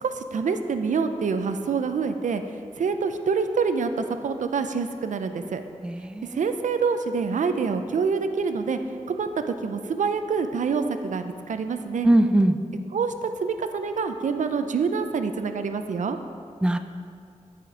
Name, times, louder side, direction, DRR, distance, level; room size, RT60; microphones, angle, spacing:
voice 1, 0.0-2.4 2.8-5.6 6.3-8.8 9.1-9.3 9.6-12.1 12.9-16.2, right 5 dB, 85° right, 8 dB, 0.5 m, -26 dB
voice 2, 5.8-6.4 12.0-12.6 16.6-16.8, right 1 dB, 5° right, 8 dB, 0.4 m, -20 dB
11.0 x 5.1 x 5.0 m, 2.3 s
wide cardioid pair, 95°, 12 cm